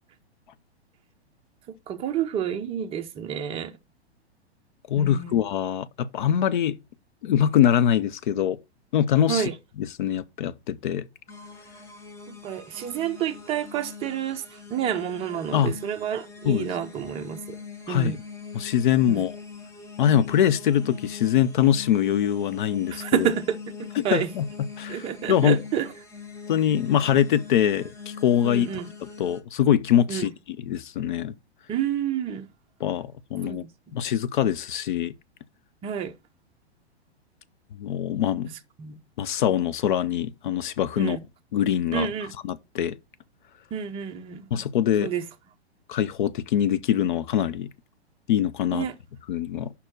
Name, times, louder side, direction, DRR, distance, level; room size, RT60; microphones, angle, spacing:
voice 1, 1.9-3.7 5.0-5.3 9.3-9.5 12.3-14.4 14.7-17.6 17.9-18.2 19.1-19.2 22.9-23.6 24.0-24.3 24.9-25.9 28.4-28.9 30.1-30.3 31.7-32.5 33.4-34.0 35.8-36.1 38.8-39.0 41.0-41.2 41.9-42.3 43.7-44.5 45.0-45.2 48.7-48.9, right 9 dB, 15° right, 0.6 m, -29 dB
voice 2, 4.9-6.8 7.2-8.6 8.9-9.5 9.8-11.1 15.5-15.7 16.4-16.7 17.9-18.2 18.5-19.4 20.0-23.3 24.0-24.5 24.8-25.6 26.5-28.7 29.0-31.3 32.8-33.6 33.9-35.1 37.8-38.5 39.2-41.2 41.5-42.1 42.4-43.0 44.5-45.1 45.9-47.7 48.3-48.9 49.3-49.7, left 10 dB, 50° left, 0.6 m, -23 dB
sound 1, 11.3-29.4, left 5 dB, 10° left, 1.0 m, -42 dB
5.5 x 4.2 x 6.2 m
figure-of-eight pair, 110°, 33 cm